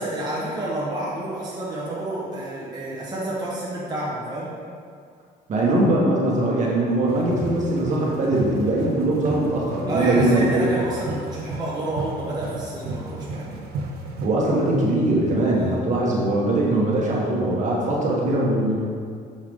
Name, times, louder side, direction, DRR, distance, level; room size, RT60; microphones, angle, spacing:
voice 1, 0.0-4.5 9.8-13.6 15.7-15.8, right 1 dB, 25° right, -7 dB, 1.2 m, -29 dB
voice 2, 5.5-10.7 14.2-18.8, right 1 dB, 45° right, -4 dB, 1.5 m, -21 dB
sound 1, 7.1-14.3, right 3 dB, 70° right, 0.8 m, -34 dB
6.6 x 4.7 x 3.7 m, 2.2 s
cardioid pair, 110°, 17 cm